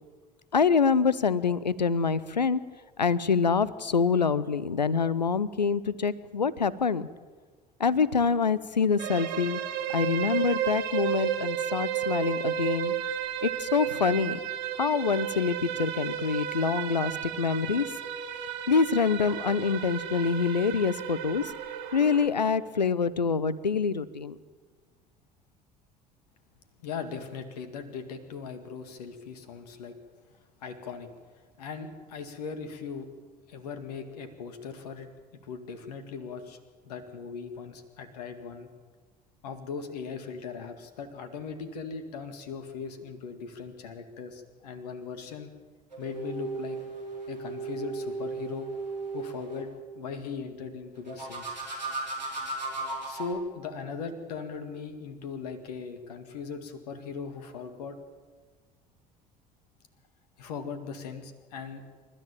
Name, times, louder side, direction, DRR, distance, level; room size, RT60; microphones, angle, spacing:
voice 1, 0.5-2.6 3.0-7.1 7.8-9.6 9.9-12.9 13.4-14.4 14.8-17.8 18.7-21.4 21.9-24.4, left 5 dB, 85° left, 19 dB, 0.7 m, -26 dB
sound 1, 9.0-22.3, right 10 dB, 55° right, 2.3 m, -33 dB
voice 2, 26.8-30.0 30.6-31.1 31.3-33.1 33.5-36.6 36.8-38.7 39.4-45.5 46.0-46.8 47.3-48.7 49.1-49.7 50.0-51.6 53.1-58.0 60.4-61.8, left 5 dB, 70° left, 8 dB, 2.0 m, -39 dB
sound 2, 45.9-49.7 51.1-53.3, right 3 dB, 90° right, 4.5 m, -36 dB
28.0 x 13.5 x 8.9 m, 1.4 s
figure-of-eight pair, 60°, 21 cm